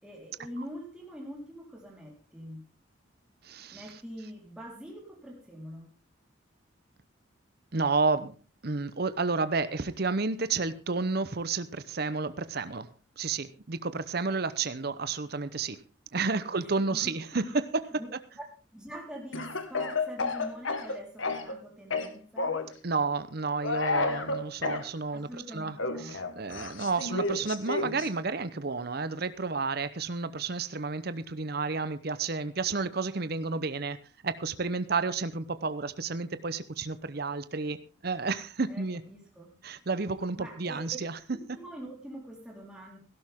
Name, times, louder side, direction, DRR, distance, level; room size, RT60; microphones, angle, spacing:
voice 1, 0.0-2.7 3.7-5.9 16.3-17.1 17.4-17.5 18.0-18.1 18.7-22.7 25.1-26.2 38.7-39.5 40.4-40.9 41.3-43.0, equal, 5° right, -2 dB, 4.1 m, -44 dB
voice 2, 3.4-3.9 7.7-8.4 8.6-12.9 13.2-15.8 16.1-18.0 22.8-34.0 34.2-39.0 39.6-41.2, right 4 dB, 50° right, 14 dB, 0.8 m, -31 dB
Speech / Cough, 19.3-21.6 21.9-22.7 23.6-24.8 25.8-28.1, left 3 dB, 80° left, 1.7 m, -31 dB
17.0 x 12.0 x 3.7 m, 0.33 s
head